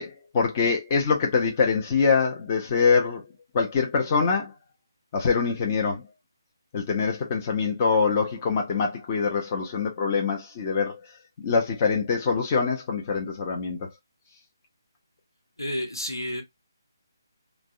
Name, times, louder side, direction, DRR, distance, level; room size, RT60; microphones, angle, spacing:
voice 1, 0.0-3.2 3.5-4.5 5.1-6.0 6.7-11.0 11.4-13.9, left 5 dB, 25° left, 0.6 m, -24 dB
voice 2, 15.6-16.4, left 1 dB, 85° left, 0.9 m, -30 dB
3.3 x 2.1 x 2.5 m
figure-of-eight pair, 145°, 2 cm